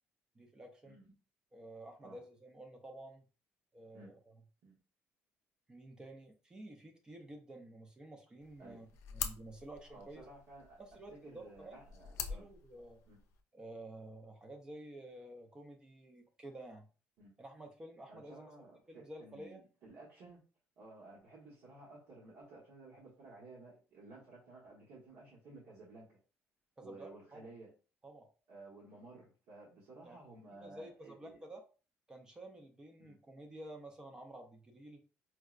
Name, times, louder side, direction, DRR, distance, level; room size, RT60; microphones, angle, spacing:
voice 1, 0.4-1.0 1.5-3.2 3.7-4.4 5.7-8.9 9.1-10.2 10.8-11.8 12.3-13.0 13.5-16.9 17.4-18.5 18.9-19.6 26.8-27.5 28.0-28.3 30.0-30.2 30.6-31.6 32.1-35.0, right 1 dB, 15° right, 4 dB, 0.4 m, -51 dB
sound 1, 8.4-13.4, left 8 dB, 85° left, 0.4 m, -46 dB
voice 2, 9.9-10.8 11.2-12.5 13.1-13.2 17.2-17.4 18.1-20.4 20.8-26.2 26.8-27.7 28.5-31.4 33.0-33.1, right 2 dB, 75° right, -5 dB, 1.0 m, -55 dB
4.4 x 2.0 x 2.3 m, 0.35 s
cardioid pair, 150°, 5 cm